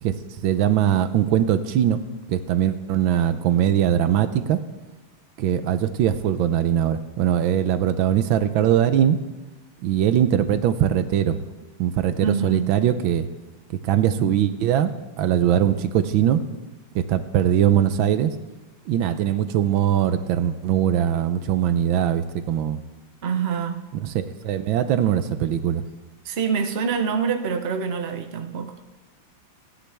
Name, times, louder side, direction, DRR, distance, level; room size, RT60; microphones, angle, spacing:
voice 1, 0.0-2.0 2.3-4.6 5.4-9.2 9.8-11.4 11.8-13.3 13.7-16.4 16.9-18.3 18.9-22.8 23.9-25.8, right 10 dB, 85° right, 11 dB, 1.5 m, -21 dB
voice 2, 12.2-12.7 23.2-23.8 26.2-28.7, right 6 dB, 40° right, 6 dB, 1.0 m, -25 dB
30.0 x 10.0 x 3.4 m, 1.2 s
omnidirectional pair, 2.2 m